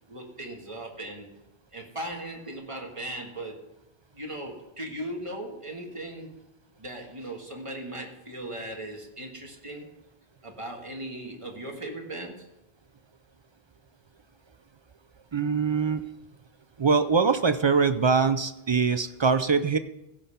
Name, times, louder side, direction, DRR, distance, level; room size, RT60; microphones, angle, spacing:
voice 1, 0.1-1.3 1.7-3.6 4.1-6.3 6.8-9.9 10.4-12.5, right 1 dB, 30° right, 1 dB, 1.7 m, -38 dB
voice 2, 15.3-16.0 16.8-19.8, right 5 dB, 45° right, 11 dB, 0.3 m, -23 dB
16.0 x 5.4 x 5.7 m, 0.89 s
omnidirectional pair, 1.0 m